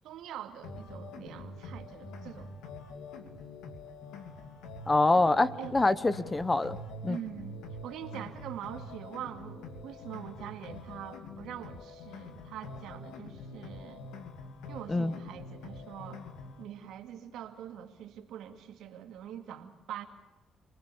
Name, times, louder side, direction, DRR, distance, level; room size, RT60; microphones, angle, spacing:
voice 1, 0.0-2.5 5.5-5.8 7.1-7.6 7.8-14.1 14.7-16.2 16.6-20.0, right 10 dB, 85° right, 6 dB, 2.4 m, -44 dB
sound 1, 0.6-16.6, left 2 dB, 90° left, 2.7 m, -45 dB
voice 2, 4.9-6.8 7.0-7.2 14.9-15.1, left 2 dB, 20° left, 16 dB, 1.0 m, -25 dB
28.5 x 20.0 x 7.1 m, 1.1 s
cardioid pair, 90°, 0 cm